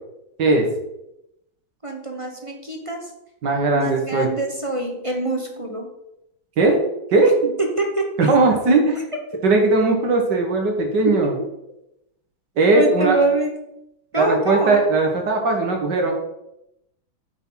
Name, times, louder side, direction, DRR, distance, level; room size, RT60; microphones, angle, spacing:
voice 1, 1.8-3.1 3.7-5.9 7.6-8.3 11.0-11.3 12.7-13.8 14.1-14.8, right 2 dB, 25° right, 2 dB, 0.8 m, -24 dB
voice 2, 3.4-4.3 6.6-6.8 7.1-7.5 8.2-9.1 9.4-11.3 12.6-13.2 14.2-16.1, right 3 dB, 55° right, 2 dB, 2.3 m, -18 dB
9.3 x 7.4 x 4.0 m, 0.85 s
omnidirectional pair, 2.3 m